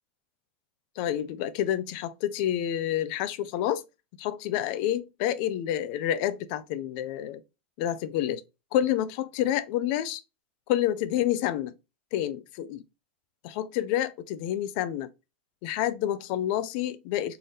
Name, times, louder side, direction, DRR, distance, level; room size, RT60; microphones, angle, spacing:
voice 1, 1.0-3.8 4.2-7.4 7.8-8.4 8.7-10.2 10.7-11.7 12.1-12.8 13.4-15.1 15.6-17.4, left 11 dB, 50° left, 0.5 m, -28 dB
3.3 x 2.7 x 3.6 m
supercardioid pair, 140°, 6 cm